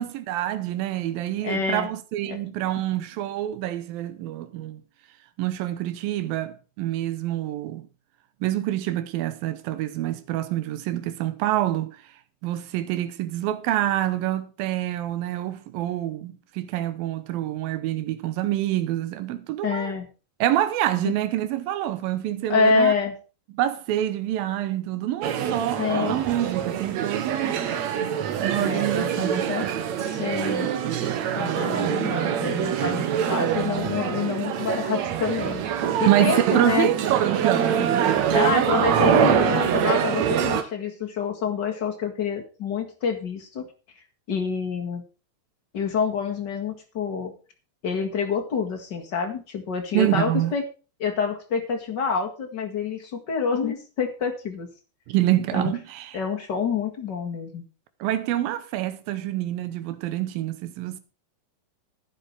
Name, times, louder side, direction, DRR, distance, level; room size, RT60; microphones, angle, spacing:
voice 1, 0.0-4.8 5.4-7.9 8.4-12.0 12.4-19.9 20.4-22.9 23.5-27.6 28.4-30.1 36.1-38.7 39.7-40.0 49.9-50.5 55.1-56.2 58.0-61.0, right 13 dB, 85° right, 2.8 m, -26 dB
voice 2, 1.4-1.9 2.3-2.4 19.6-20.1 21.0-21.2 22.5-23.1 25.8-26.2 28.5-29.6 30.0-30.7 31.4-35.6 36.0-36.9 38.3-43.7 44.3-45.0 45.7-47.3 47.8-50.7 51.0-54.7 55.5-55.7 56.1-57.6, left 5 dB, 40° left, 1.8 m, -27 dB
sound 1, 25.2-40.6, right 9 dB, 65° right, 2.1 m, -25 dB
11.0 x 10.5 x 4.5 m
omnidirectional pair, 4.1 m